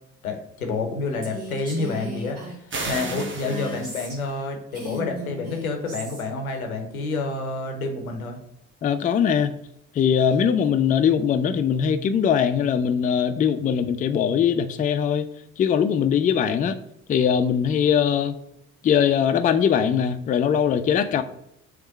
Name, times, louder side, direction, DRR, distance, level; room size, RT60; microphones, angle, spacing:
voice 1, 0.2-8.4, left 3 dB, 90° left, 0.6 m, -29 dB
Female speech woman speaking, 1.2-4.4 4.7-6.3, equal, 90° right, 1.1 m, -36 dB
sound 1, 2.7-4.3, right 3 dB, 30° right, 0.9 m, -34 dB
voice 2, 8.8-9.6 9.9-15.3 15.6-16.8 17.1-18.4 18.8-21.2, left 8 dB, 20° left, 0.3 m, -21 dB
3.5 x 3.1 x 4.5 m
figure-of-eight pair, 45°, 41 cm